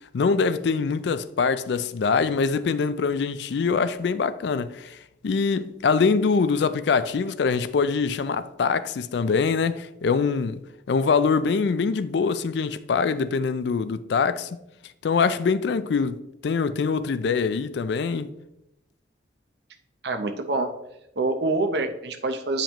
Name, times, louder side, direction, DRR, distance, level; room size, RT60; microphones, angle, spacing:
voice 1, 0.1-5.0 5.2-10.6 10.9-14.5 15.0-18.3, left 5 dB, 65° left, 0.4 m, -24 dB
voice 2, 20.0-20.7 21.2-22.6, right 3 dB, 60° right, 0.7 m, -26 dB
8.8 x 5.0 x 3.0 m
head